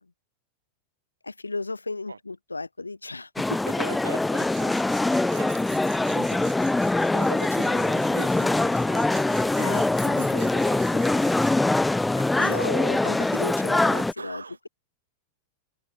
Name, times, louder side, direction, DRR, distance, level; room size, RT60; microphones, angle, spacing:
voice 1, 1.2-3.6 9.6-10.2 12.1-14.7, left 3 dB, 90° left, 1.7 m, -35 dB
sound 1, 3.4-14.1, left 2 dB, 5° left, 0.6 m, -23 dB
voice 2, 3.7-4.7 5.0-6.5 7.1-11.6 14.2-14.6, right 4 dB, 85° right, 2.5 m, -41 dB
Tools, 4.3-11.6, right 26 dB, 50° right, 1.1 m, -48 dB
open air
figure-of-eight pair, 95°, 0 cm